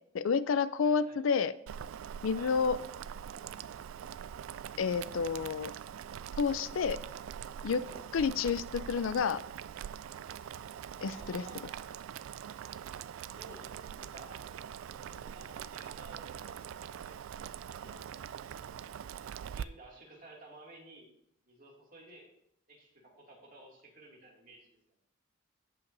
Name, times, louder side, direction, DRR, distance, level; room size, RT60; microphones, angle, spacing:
voice 1, 0.1-1.5 2.2-2.8 4.8-5.7 6.4-7.0 7.6-7.8 8.1-9.4 11.0-11.4, left 5 dB, 70° left, 15 dB, 0.4 m, -29 dB
voice 2, 0.8-1.2 2.3-2.5 7.8-8.0 10.9-11.9 13.1-14.4 15.0-17.2 17.8-18.0 19.4-21.1 21.5-22.3 22.7-24.7, right 2 dB, 40° right, -3 dB, 2.3 m, -54 dB
Boiling, 1.7-19.6, right 8 dB, 75° right, 0.3 m, -43 dB
16.0 x 5.7 x 2.6 m, 0.71 s
head